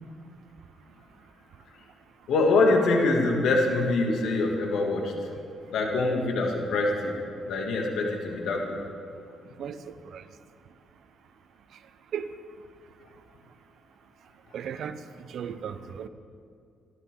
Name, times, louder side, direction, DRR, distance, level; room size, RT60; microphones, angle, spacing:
voice 1, 2.3-5.1 5.7-7.2 7.5-8.8, left 3 dB, 75° left, 1 dB, 2.5 m, -24 dB
voice 2, 9.6-10.2 12.1-12.3 14.5-15.0 15.3-16.1, right 8 dB, 65° right, 11 dB, 0.9 m, -35 dB
26.0 x 12.5 x 3.9 m, 2.4 s
cardioid pair, 90°, 0 cm